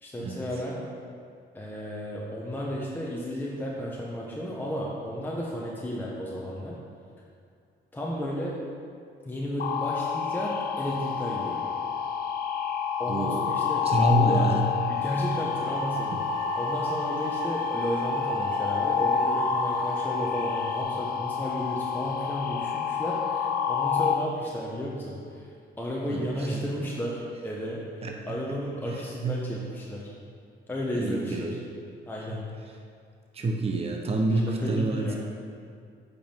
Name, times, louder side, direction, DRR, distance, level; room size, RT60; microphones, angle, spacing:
voice 1, 0.0-0.9 1.5-6.8 7.9-8.6 9.2-11.6 13.0-14.5 14.9-16.2 16.6-25.5 25.8-30.1 30.7-31.6 32.1-32.5 34.3-35.2, equal, 10° left, -4 dB, 1.1 m, -33 dB
sound 1, 9.6-24.1, left 7 dB, 50° left, 0.6 m, -28 dB
voice 2, 13.1-13.5 13.8-14.8 16.1-16.2 26.1-26.6 28.0-28.6 28.9-29.5 30.9-31.7 32.3-32.4 33.3-35.1, right 2 dB, 30° right, 2 dB, 0.8 m, -28 dB
sound 2, 15.2-20.8, right 3 dB, 75° right, 0.8 m, -35 dB
8.5 x 5.3 x 4.5 m, 2.3 s
cardioid pair, 90°, 20 cm